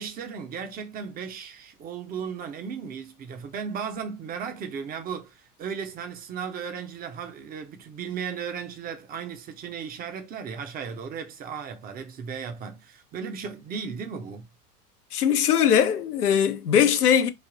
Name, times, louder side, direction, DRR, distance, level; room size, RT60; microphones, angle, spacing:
voice 1, 0.0-14.5, right 6 dB, 20° right, 0.6 m, -36 dB
voice 2, 15.1-17.3, left 8 dB, 75° left, 0.7 m, -20 dB
3.3 x 2.5 x 3.7 m
figure-of-eight pair, 80°, 47 cm